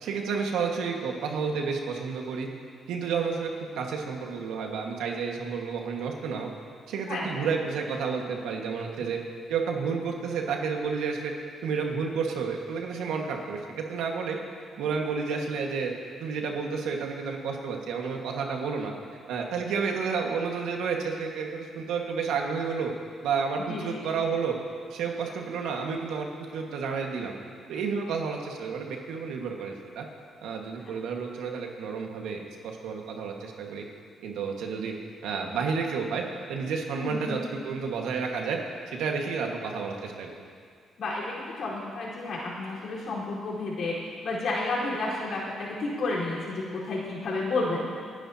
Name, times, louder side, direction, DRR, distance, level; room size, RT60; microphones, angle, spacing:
voice 1, 0.0-2.5 2.9-6.5 6.9-9.2 9.5-11.3 11.6-14.4 14.8-15.9 16.2-18.9 19.3-22.9 23.2-24.6 24.9-27.3 27.7-30.1 30.4-33.9 34.2-34.9 35.2-38.6 38.9-40.3, right 5 dB, 85° right, 1 dB, 1.7 m, -31 dB
voice 2, 7.1-7.5 23.7-24.0 37.0-37.3 41.0-47.8, left 2 dB, 60° left, -6 dB, 4.4 m, -31 dB
29.5 x 10.0 x 2.9 m, 2.1 s
cardioid pair, 90°, 0 cm